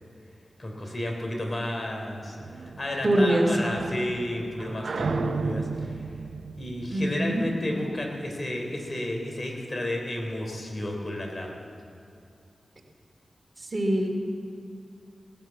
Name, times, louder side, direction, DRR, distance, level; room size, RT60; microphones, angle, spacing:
voice 1, 0.6-2.4 2.8-6.0 6.6-11.7, left 1 dB, 45° left, 2 dB, 3.2 m, -32 dB
sound 1, 2.4-7.9, right 4 dB, 70° right, 0.6 m, -34 dB
voice 2, 3.0-3.5 6.9-7.4 13.6-14.1, right 1 dB, 40° right, 2 dB, 2.5 m, -23 dB
18.0 x 10.5 x 7.4 m, 2.6 s
cardioid pair, 55°, 0 cm